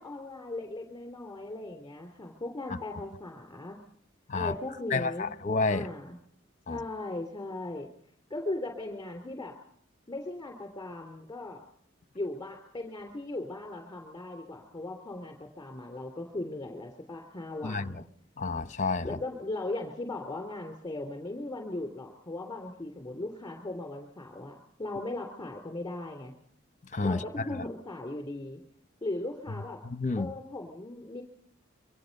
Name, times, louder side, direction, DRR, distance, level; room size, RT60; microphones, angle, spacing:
voice 1, 0.0-3.8 4.3-5.3 5.7-6.2 6.7-7.9 8.3-9.5 10.1-11.6 12.1-18.0 19.0-26.4 27.0-28.6 29.0-29.8 30.2-31.2, left 2 dB, 20° left, 3.1 m, -38 dB
voice 2, 4.9-5.9 6.7-6.8 17.6-18.0 18.4-19.2 26.9-27.2 27.6-27.7 29.8-30.3, left 3 dB, 40° left, 0.9 m, -30 dB
27.0 x 24.0 x 5.4 m
head